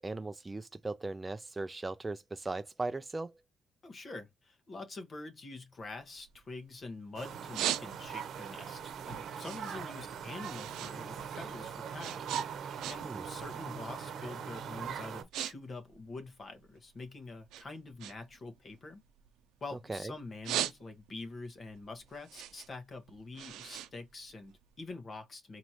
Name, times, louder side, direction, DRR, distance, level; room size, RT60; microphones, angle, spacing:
voice 1, 0.0-3.3 13.0-13.2 19.9-20.1, right 2 dB, 20° right, 0.3 m, -38 dB
voice 2, 3.8-8.8 9.1-12.3 12.9-19.0 19.6-25.6, left 3 dB, 40° left, 1.2 m, -45 dB
sound 1, 5.8-6.9 7.3-8.3 8.8-11.0 11.2-13.3 13.6-13.9 14.5-14.7 15.0-15.5 15.8-17.0 17.5-19.8 20.2-21.3 21.7-24.8, right 12 dB, 90° right, 0.5 m, -39 dB
sound 2, 7.1-15.2, right 7 dB, 70° right, 0.8 m, -41 dB
4.5 x 2.9 x 2.8 m
cardioid pair, 90°, 0 cm